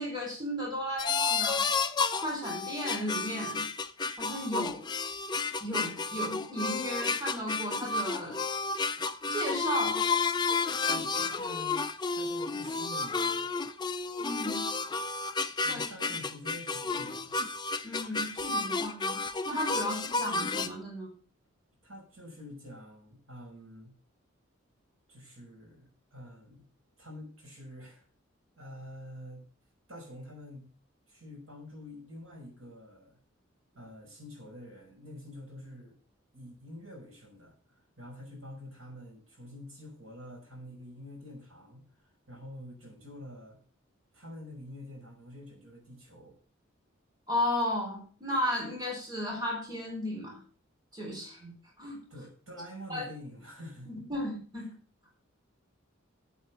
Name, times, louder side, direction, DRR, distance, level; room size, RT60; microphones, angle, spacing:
voice 1, 0.0-1.7 2.2-3.7 4.2-4.8 5.6-8.4 9.3-10.1 10.9-11.0 14.2-14.7 15.7-15.8 17.8-21.1 47.3-50.4 50.9-52.0 52.9-53.1 53.9-54.7, left 1 dB, 20° right, -1 dB, 4.1 m, -34 dB
sound 1, 1.0-20.7, left 4 dB, 20° left, 0.6 m, -31 dB
voice 2, 10.9-11.9 12.1-13.5 15.6-17.4 21.8-23.9 25.1-26.6 27.0-28.1 28.6-29.4 29.9-30.7 31.1-33.2 33.7-36.0 36.3-43.6 44.1-46.4 52.1-54.0, left 1 dB, 85° right, 0 dB, 5.7 m, -47 dB
8.2 x 8.0 x 7.1 m, 0.40 s
head